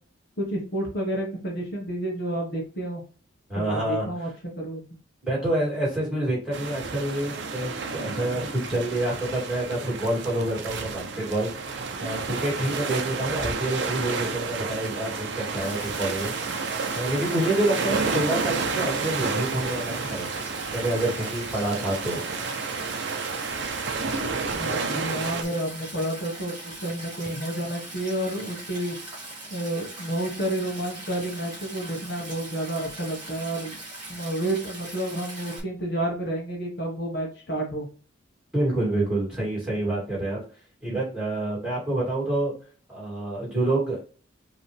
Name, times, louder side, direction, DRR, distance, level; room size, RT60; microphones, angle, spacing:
voice 1, 0.4-3.0 3.5-4.3 4.6-4.8 24.5-28.9 29.5-33.8 34.1-37.9, right 1 dB, 50° left, -1 dB, 1.3 m, -30 dB
voice 2, 3.5-4.1 5.2-11.5 12.0-16.3 16.9-20.3 20.7-22.2 38.5-40.4 40.8-42.5 42.9-44.0, right 1 dB, 5° right, -5 dB, 2.6 m, -27 dB
sound 1, 6.5-25.4, right 4 dB, 55° right, 0.6 m, -31 dB
Stream, 15.6-35.6, right 2 dB, 25° right, 2.4 m, -41 dB
5.0 x 3.1 x 3.3 m, 0.38 s
head